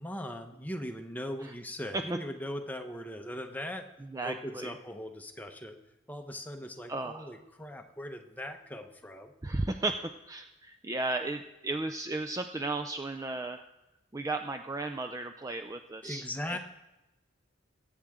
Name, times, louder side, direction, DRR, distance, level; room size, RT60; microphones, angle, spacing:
voice 1, 0.0-3.9 4.2-5.8 6.1-9.3 16.0-16.6, equal, 10° left, 4 dB, 0.9 m, -39 dB
voice 2, 4.1-4.7 6.9-7.4 9.4-10.0 10.3-13.6 14.1-16.6, right 2 dB, 15° right, 7 dB, 0.4 m, -34 dB
21.5 x 8.6 x 3.7 m, 0.98 s
head